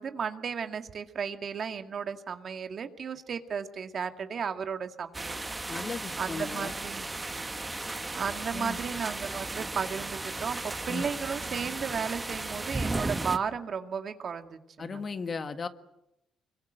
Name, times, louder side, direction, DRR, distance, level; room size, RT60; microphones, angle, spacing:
voice 1, 0.0-5.4 6.2-7.1 8.1-15.0, right 6 dB, 55° right, 7 dB, 2.0 m, -34 dB
sound 1, 5.1-13.4, right 2 dB, 20° right, 1.5 m, -35 dB
voice 2, 5.7-6.7 8.5-8.8 10.9-11.0 14.8-15.7, left 4 dB, 40° left, 9 dB, 1.7 m, -36 dB
25.5 x 23.5 x 7.9 m, 0.89 s
cardioid pair, 90°, 0 cm